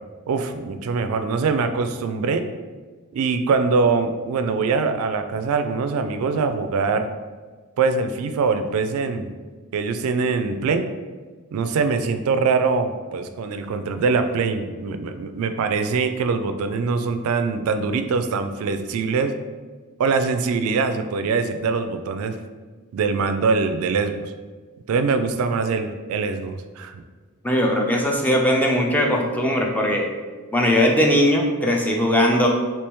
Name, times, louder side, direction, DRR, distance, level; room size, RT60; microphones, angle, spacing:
voice 1, 0.3-2.5 3.1-7.1 7.8-9.3 9.7-10.8 11.5-19.3 20.0-22.4 22.9-24.3 24.9-27.0, right 4 dB, 75° right, 8 dB, 0.3 m, -23 dB
voice 2, 27.4-30.1 30.5-32.5, equal, 5° left, 0 dB, 0.4 m, -19 dB
3.4 x 2.9 x 3.0 m, 1.4 s
head